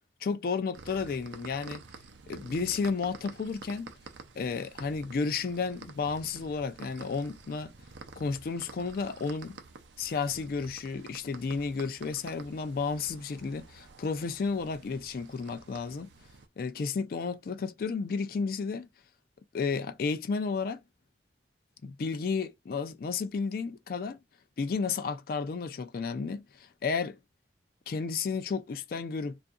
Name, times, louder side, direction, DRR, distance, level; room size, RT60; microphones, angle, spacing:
voice 1, 0.2-1.8 2.3-3.9 4.4-7.7 8.2-9.6 10.0-16.1 16.6-18.9 19.5-20.8 21.8-24.2 24.6-27.2 27.9-29.4, left 5 dB, 55° left, 0.3 m, -32 dB
sound 1, 0.7-16.5, right 4 dB, 85° right, 0.5 m, -50 dB
2.6 x 2.4 x 2.4 m
head